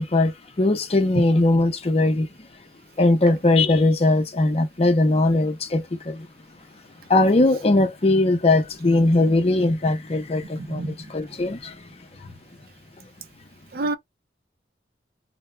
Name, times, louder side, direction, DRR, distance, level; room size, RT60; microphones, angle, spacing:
voice 1, 0.0-2.3 3.0-6.3 7.1-11.8, left 2 dB, 35° left, 0.6 m, -20 dB
voice 2, 10.6-10.9 13.7-14.0, right 2 dB, 55° right, 0.5 m, -28 dB
2.3 x 2.1 x 3.1 m
head